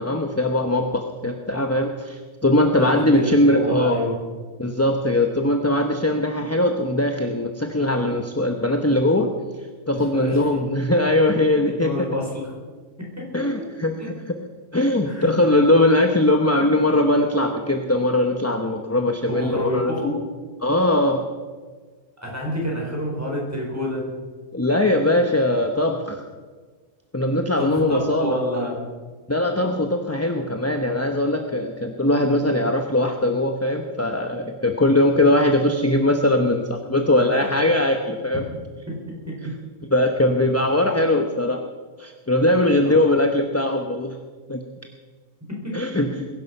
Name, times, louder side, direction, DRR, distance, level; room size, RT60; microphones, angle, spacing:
voice 1, 0.0-4.0 4.6-9.3 9.9-11.9 13.3-13.9 14.7-19.9 20.6-21.3 24.5-26.2 27.1-28.4 29.3-38.4 39.9-41.6 42.0-44.2 44.5-44.6 45.7-46.1, left 1 dB, 10° left, 4 dB, 0.8 m, -20 dB
voice 2, 2.8-4.2 9.9-10.5 11.8-12.5 13.0-13.7 14.0-14.1 15.0-15.6 19.3-20.1 22.2-24.0 27.6-28.8 37.3-37.6 38.3-38.4 38.9-39.4 42.8-43.1 45.5-45.8, left 1 dB, 10° right, -2 dB, 5.2 m, -28 dB
22.0 x 11.5 x 5.5 m, 1.4 s
omnidirectional pair, 1.5 m